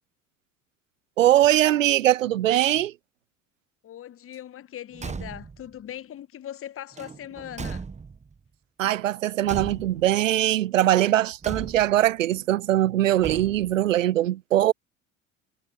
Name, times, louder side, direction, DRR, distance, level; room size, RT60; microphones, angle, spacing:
voice 1, 1.2-2.9 8.8-14.7, right 13 dB, 80° right, 0.5 m, -21 dB
voice 2, 3.8-7.8, left 11 dB, 35° left, 1.4 m, -40 dB
Car / Truck / Slam, 4.9-5.7 6.9-8.4 9.4-10.2 11.4-12.1 13.2-13.9, right 5 dB, 20° right, 1.3 m, -37 dB
figure-of-eight pair, 60°, 38 cm